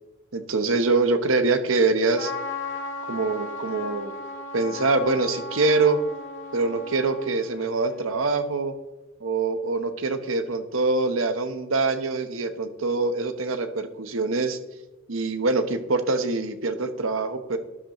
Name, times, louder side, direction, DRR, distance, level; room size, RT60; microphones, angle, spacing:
voice 1, 0.3-2.3 3.1-4.1 4.5-6.0 6.5-8.7 9.2-14.6 15.1-17.6, right 3 dB, 85° right, 8 dB, 1.0 m, -24 dB
Trumpet, 2.1-8.4, left 3 dB, 70° left, 1.6 m, -36 dB
12.0 x 10.5 x 3.1 m, 1.1 s
head